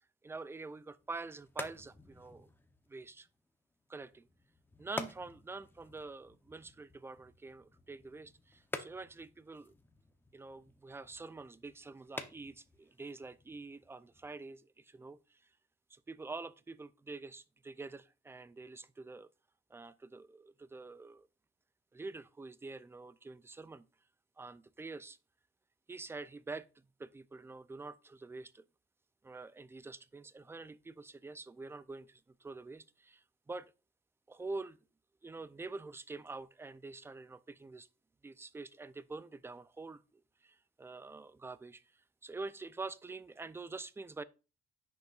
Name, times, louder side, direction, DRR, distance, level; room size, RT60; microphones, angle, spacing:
voice 1, 0.2-2.5 2.9-3.3 3.9-4.3 4.8-9.7 10.3-15.4 15.9-19.3 19.7-21.3 21.9-23.9 24.4-25.2 25.9-26.7 27.0-28.6 29.2-33.7 34.3-34.8 35.2-37.9 38.2-40.0 40.4-44.2, right 3 dB, 10° right, 0.5 m, -46 dB
sound 1, 1.0-14.5, left 2 dB, 10° left, 0.8 m, -49 dB
10.0 x 6.7 x 2.4 m
cardioid pair, 130°, 20 cm